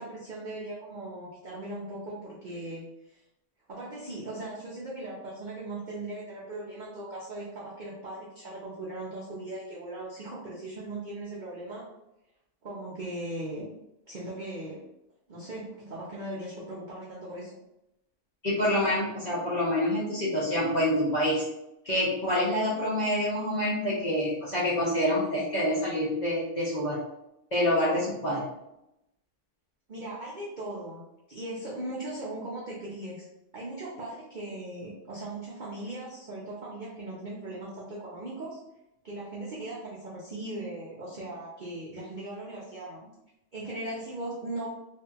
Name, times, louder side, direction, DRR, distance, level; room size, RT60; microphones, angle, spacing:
voice 1, 0.0-2.8 3.1-3.2 3.7-11.9 12.6-13.6 14.1-14.8 15.3-17.5 29.9-31.0 31.3-33.2 33.5-38.6 39.0-43.1 43.5-44.7, right 1 dB, 85° right, -6 dB, 0.4 m, -38 dB
voice 2, 18.4-21.4 21.8-27.0 27.5-28.4, left 1 dB, 45° left, -8 dB, 0.5 m, -27 dB
2.8 x 2.5 x 2.3 m, 0.87 s
omnidirectional pair, 1.6 m